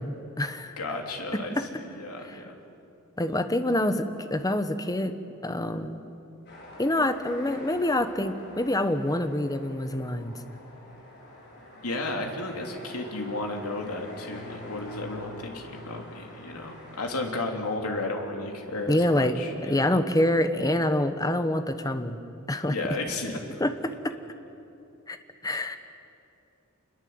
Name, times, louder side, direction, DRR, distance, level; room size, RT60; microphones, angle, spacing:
voice 1, 0.0-0.8 1.6-1.7 3.2-5.1 5.4-6.0 6.8-10.3 18.9-22.2 22.5-22.8 23.6-24.1 25.1-25.2 25.4-25.8, left 1 dB, 15° left, 9 dB, 1.1 m, -26 dB
voice 2, 0.8-2.6 11.8-19.7 22.7-23.4, left 2 dB, 80° left, 2 dB, 3.0 m, -33 dB
sound 1, 6.5-17.1, left 1 dB, 50° left, 5.3 m, -46 dB
26.5 x 21.5 x 7.9 m, 2.8 s
head